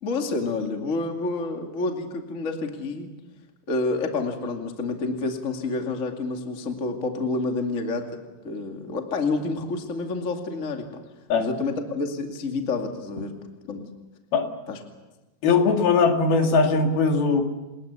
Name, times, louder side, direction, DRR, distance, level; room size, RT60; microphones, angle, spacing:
voice 1, 0.0-3.1 3.7-8.2 8.4-11.0 11.4-13.4 13.7-13.9 14.7-14.8, left 3 dB, 25° left, 3 dB, 1.7 m, -28 dB
voice 2, 15.4-17.4, left 4 dB, 65° left, 3 dB, 4.0 m, -20 dB
28.5 x 20.5 x 7.0 m, 1.1 s
omnidirectional pair, 4.8 m